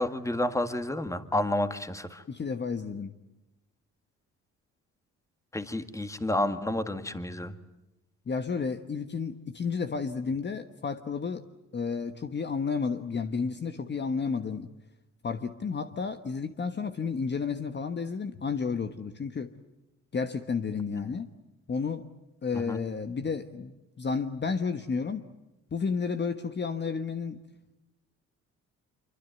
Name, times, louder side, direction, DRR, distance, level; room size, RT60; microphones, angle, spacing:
voice 1, 0.0-2.2 5.5-7.5 20.9-21.2 22.5-22.8, left 1 dB, 10° left, 9 dB, 1.9 m, -30 dB
voice 2, 2.3-3.1 8.3-11.5 11.7-14.7 15.2-19.5 20.1-21.3 21.7-22.1 22.4-25.3 25.7-27.4, left 5 dB, 35° left, 8 dB, 1.3 m, -31 dB
26.0 x 24.0 x 9.3 m, 0.97 s
cardioid pair, 90°, 30 cm